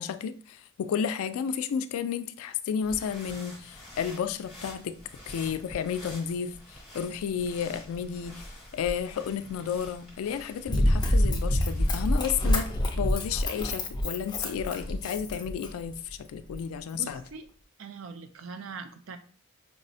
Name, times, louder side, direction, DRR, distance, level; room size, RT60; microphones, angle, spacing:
voice 1, 0.0-5.0 5.3-8.4 8.7-12.7 13.0-17.2, left 7 dB, 85° left, 0.3 m, -32 dB
sound 1, 2.8-12.7, left 1 dB, ahead, 1.0 m, -46 dB
Run, 10.7-15.9 16.5-16.6, left 1 dB, 20° left, 0.5 m, -26 dB
voice 2, 16.9-17.5 17.8-19.2, right 5 dB, 70° right, 0.4 m, -42 dB
4.7 x 2.0 x 2.6 m
head